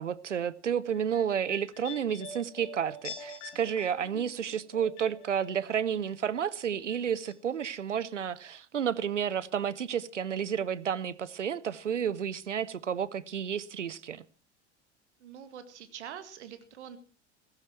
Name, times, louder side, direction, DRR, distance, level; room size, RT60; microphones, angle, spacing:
voice 1, 0.0-14.2, right 8 dB, 90° right, 0.8 m, -31 dB
sound 1, 0.9-6.1 6.4-7.3 7.6-7.7, left 4 dB, 60° left, 3.6 m, -46 dB
voice 2, 15.2-17.0, right 9 dB, 75° right, 2.0 m, -45 dB
16.0 x 15.0 x 4.5 m
figure-of-eight pair, 75°, 35 cm